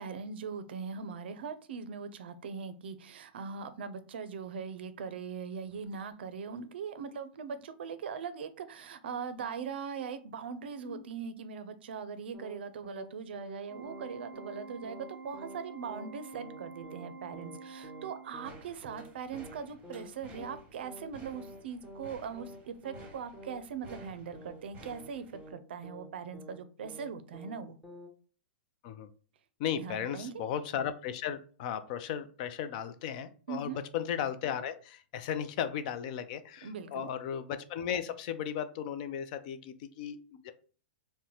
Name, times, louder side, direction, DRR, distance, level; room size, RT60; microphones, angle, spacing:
voice 1, 0.0-25.2 25.5-27.8 29.8-30.3 33.5-33.8 36.6-37.1, right 6 dB, 75° right, 0.4 m, -40 dB
sound 1, 12.3-12.6 12.8-13.1 13.3-13.6 13.8-14.1 14.3-14.6 14.8-15.1 15.3-15.6 15.8-16.1 16.3-16.6 16.8-17.1 17.3-17.6 17.8-18.1 18.3-18.6 18.8-19.1 19.3-19.6 19.8-20.1 20.3-20.6 20.8-21.1 21.3-21.6 21.8-22.1 22.3-22.6 22.8-23.1 23.3-23.6 23.8-24.1 24.3-24.6 24.8-25.1 25.3-25.6 25.8-26.1 26.3-26.6 26.8-27.1 27.3-27.6 27.8-28.1, equal, 5° left, 0.8 m, -49 dB
Organ, 13.7-18.7, right 4 dB, 10° right, 1.3 m, -48 dB
sound 2, 18.4-25.5, right 2 dB, 25° right, 0.8 m, -54 dB
voice 2, 29.6-40.5, left 9 dB, 50° left, 0.4 m, -36 dB
3.8 x 2.1 x 2.9 m
hypercardioid pair, 135°, 6 cm